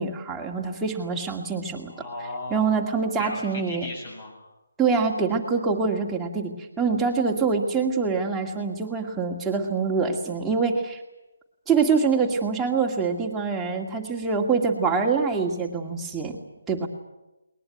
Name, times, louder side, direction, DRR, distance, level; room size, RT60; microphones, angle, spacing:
voice 1, 0.0-1.9 2.5-3.9 4.8-11.0 11.7-16.3 16.7-16.9, right 5 dB, 5° right, -2 dB, 2.2 m, -25 dB
voice 2, 1.9-2.8 3.2-4.3, left 2 dB, 35° left, 1 dB, 7.9 m, -36 dB
20.5 x 20.5 x 9.3 m, 0.99 s
hypercardioid pair, 165°, 0 cm